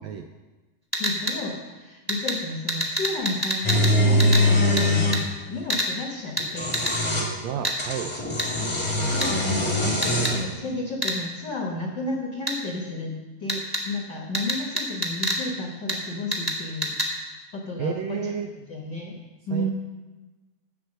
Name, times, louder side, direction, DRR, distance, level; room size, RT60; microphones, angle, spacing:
sound 1, 0.9-1.4 2.1-2.4 2.7-3.9 4.2-4.4 4.8-4.9 5.1-5.2 5.7-5.9 6.4-6.5 6.7-6.9 7.6-7.8 8.4-8.5 9.2-9.3 10.0-10.3 11.0-11.2 12.5-12.6 13.5-13.8 14.3-15.4 15.9-16.0 16.3-16.6 16.8-17.1, left 1 dB, 10° right, 1.1 m, -26 dB
voice 1, 1.0-6.8 8.5-8.7 9.1-17.0 17.5-19.2 19.5-19.7, left 2 dB, 55° left, 0 dB, 1.2 m, -32 dB
sound 2, 3.6-5.2 6.4-7.3 7.8-10.5, left 1 dB, 20° left, 1.3 m, -22 dB
voice 2, 7.4-8.1 17.8-18.5 19.5-19.7, right 7 dB, 80° right, 6 dB, 1.6 m, -30 dB
12.0 x 8.2 x 6.5 m, 1.2 s
omnidirectional pair, 3.7 m